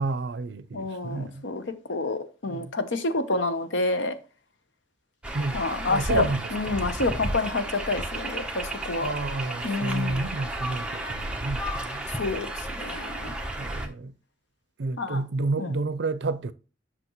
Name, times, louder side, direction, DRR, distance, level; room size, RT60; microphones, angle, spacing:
voice 1, 0.0-1.4 2.4-2.7 5.3-6.8 9.0-12.0 13.6-14.1 14.8-16.5, right 3 dB, 65° right, 0.5 m, -30 dB
voice 2, 0.7-1.6 1.9-4.2 5.5-6.2 6.5-9.1 9.6-10.2 12.1-13.4 15.0-15.2 15.6-15.7, left 2 dB, 80° left, 0.9 m, -28 dB
sound 1, 5.2-13.9, right 1 dB, 5° right, 0.9 m, -33 dB
8.0 x 6.0 x 3.0 m
head